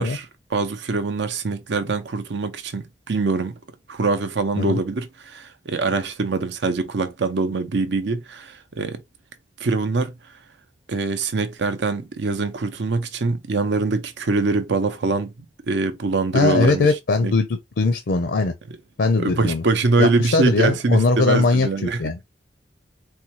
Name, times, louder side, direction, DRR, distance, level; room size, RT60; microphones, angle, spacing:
voice 1, 0.0-3.5 3.9-9.0 9.6-10.1 10.9-15.3 15.7-16.9 17.2-17.3 19.2-22.0, right 3 dB, 70° right, 0.6 m, -23 dB
voice 2, 16.3-18.5 19.0-19.6 20.0-22.2, left 3 dB, 70° left, 0.5 m, -20 dB
4.1 x 2.2 x 2.8 m
head